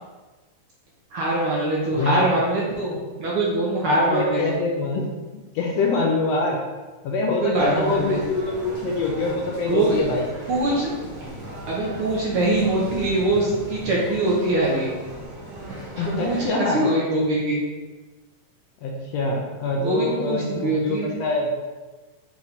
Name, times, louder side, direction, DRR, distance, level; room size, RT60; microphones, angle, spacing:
voice 1, 1.1-4.6 7.4-8.2 9.7-10.0 10.5-10.9 11.7-14.9 16.0-17.6 19.8-21.1, right 2 dB, 60° right, -5 dB, 1.5 m, -23 dB
voice 2, 2.0-2.3 3.9-5.1 5.5-6.6 7.0-10.3 16.0-16.9 18.8-21.6, left 2 dB, 70° left, -1 dB, 1.7 m, -24 dB
sound 1, 7.5-16.5, equal, 45° right, 1.8 m, -37 dB
7.1 x 3.3 x 4.1 m, 1.2 s
omnidirectional pair, 3.3 m